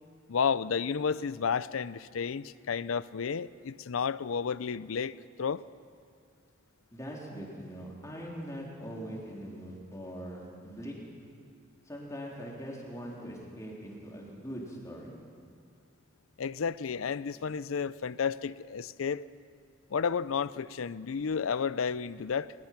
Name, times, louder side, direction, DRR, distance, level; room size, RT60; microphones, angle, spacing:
voice 1, 0.3-5.6 16.4-19.2 19.9-22.5, left 6 dB, 85° left, 0.5 m, -32 dB
voice 2, 6.9-11.0 11.9-15.1, equal, 15° left, 3.6 m, -42 dB
22.0 x 20.5 x 6.0 m
head